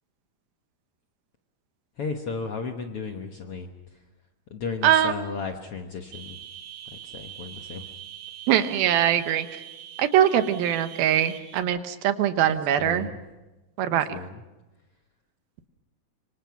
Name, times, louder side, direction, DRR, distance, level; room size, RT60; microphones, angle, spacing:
voice 1, 2.0-3.7 4.5-6.4 6.9-7.9 12.4-13.2 13.9-14.4, left 4 dB, 65° left, 4 dB, 1.4 m, -34 dB
voice 2, 4.8-5.3 8.5-9.5 10.0-13.1 13.8-14.1, right 10 dB, 90° right, 9 dB, 3.0 m, -22 dB
sound 1, 6.1-11.6, right 11 dB, 60° right, 3.0 m, -43 dB
25.5 x 25.0 x 5.9 m, 1.1 s
omnidirectional pair, 4.2 m